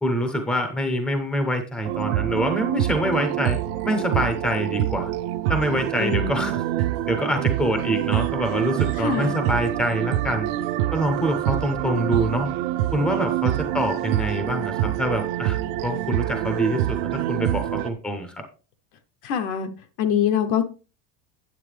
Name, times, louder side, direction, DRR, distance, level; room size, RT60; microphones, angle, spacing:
voice 1, 0.0-3.6 3.8-5.1 5.5-6.6 7.1-10.5 10.9-12.5 12.9-18.4, equal, ahead, 0.7 m, -25 dB
sound 1, 1.9-17.9, right 14 dB, 50° right, 0.7 m, -26 dB
voice 2, 6.0-6.5 9.0-9.3 19.2-19.7 20.0-20.6, left 8 dB, 45° left, 0.8 m, -24 dB
9.3 x 7.8 x 3.3 m
cardioid pair, 180°, 38 cm